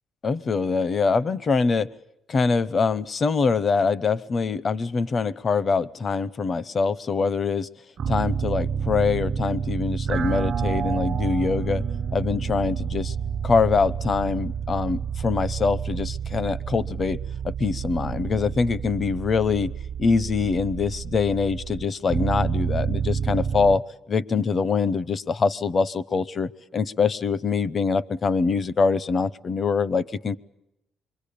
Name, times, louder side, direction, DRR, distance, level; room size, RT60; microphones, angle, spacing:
voice 1, 0.2-1.9 2.3-7.7 8.1-11.8 12.1-13.1 13.4-17.2 17.4-19.7 20.0-23.8 24.1-30.4, left 4 dB, 45° left, 19 dB, 0.9 m, -24 dB
sound 1, 8.0-23.8, right 7 dB, 60° right, 1.0 m, -29 dB
26.0 x 23.5 x 8.6 m, 0.84 s
cardioid pair, 90°, 0 cm